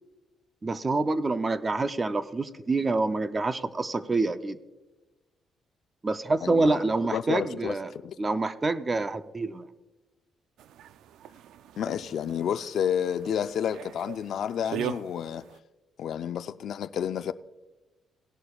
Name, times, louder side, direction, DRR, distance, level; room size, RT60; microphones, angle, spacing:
voice 1, 0.6-4.6 6.0-7.9 8.2-9.6, right 3 dB, 20° right, 0.6 m, -27 dB
voice 2, 6.4-6.8 7.1-7.8 8.0-8.2 11.8-15.4 16.0-17.3, left 9 dB, 60° left, 0.4 m, -30 dB
sound 1, 10.6-15.6, right 10 dB, 85° right, 0.4 m, -40 dB
17.5 x 11.0 x 2.4 m
cardioid pair, 145°, 0 cm